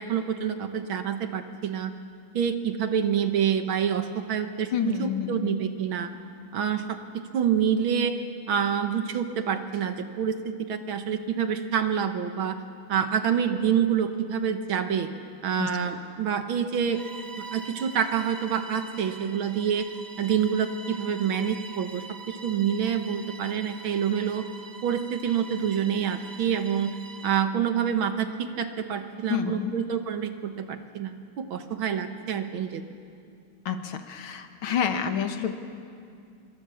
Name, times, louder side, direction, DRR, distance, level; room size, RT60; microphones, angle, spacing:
voice 1, 0.0-1.9 2.3-6.1 6.5-7.0 7.3-8.2 8.5-12.6 12.9-15.1 15.4-17.0 17.4-19.9 20.2-24.5 24.8-26.9 27.2-32.8, right 8 dB, 70° right, 8 dB, 2.0 m, -27 dB
voice 2, 4.7-5.6 15.6-15.8 29.3-29.8 33.7-35.5, left 8 dB, 75° left, 7 dB, 2.1 m, -29 dB
Bowed string instrument, 16.9-27.5, right 3 dB, 30° right, 0.7 m, -44 dB
26.0 x 23.5 x 7.1 m, 2.4 s
omnidirectional pair, 2.4 m